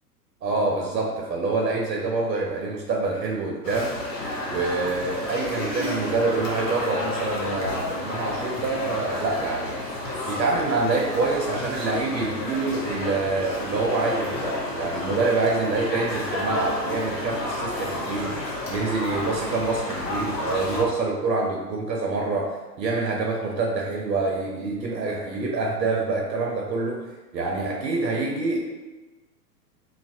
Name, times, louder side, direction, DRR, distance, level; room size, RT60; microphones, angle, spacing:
voice 1, 0.4-3.9 4.5-9.8 10.3-18.3 18.7-27.0 27.3-28.7, right 3 dB, 85° right, -1 dB, 0.6 m, -26 dB
sound 1, 3.6-20.8, left 1 dB, 80° left, 0.9 m, -31 dB
2.4 x 2.0 x 2.6 m, 1.2 s
hypercardioid pair, 115°, 49 cm